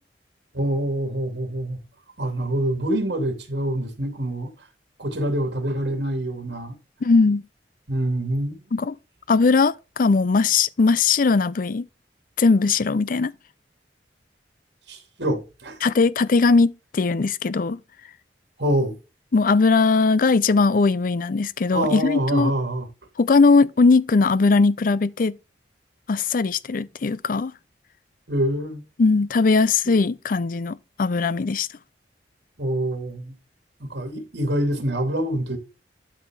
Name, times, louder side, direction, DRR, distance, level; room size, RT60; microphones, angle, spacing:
voice 1, 0.5-1.8 2.2-4.5 5.0-6.8 7.9-8.6 14.9-15.8 18.6-19.0 21.7-22.9 28.3-28.8 29.8-29.9 32.6-33.3 33.8-35.6, right 1 dB, 70° right, 2.6 m, -25 dB
voice 2, 7.0-7.4 8.7-8.9 9.3-11.9 12.4-13.3 15.8-17.8 19.3-22.5 23.2-25.4 26.1-27.5 29.0-31.7, left 4 dB, 50° left, 0.5 m, -19 dB
12.0 x 4.2 x 3.6 m
head